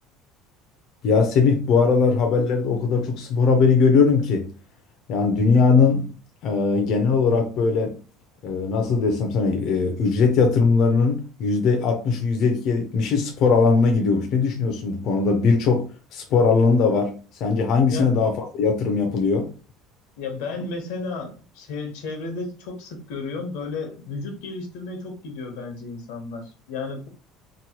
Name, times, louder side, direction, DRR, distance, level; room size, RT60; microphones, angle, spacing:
voice 1, 1.0-4.5 5.1-6.1 6.4-8.0 8.4-17.2 17.4-19.5, left 4 dB, 45° left, 0.5 m, -20 dB
voice 2, 20.2-27.1, left 3 dB, 85° left, 0.9 m, -33 dB
3.0 x 2.1 x 2.9 m
cardioid pair, 165°, 0 cm